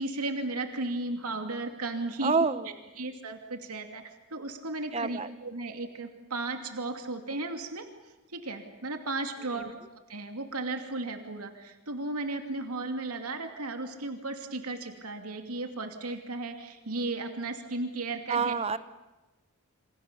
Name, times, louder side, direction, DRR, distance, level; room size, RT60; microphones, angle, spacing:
voice 1, 0.0-2.4 3.0-7.9 8.3-9.7 10.1-18.5, right 2 dB, 90° right, 5 dB, 2.7 m, -35 dB
voice 2, 2.2-2.7 4.9-5.3 18.3-18.8, right 5 dB, 30° right, 14 dB, 0.8 m, -27 dB
28.5 x 25.5 x 7.0 m, 1.1 s
head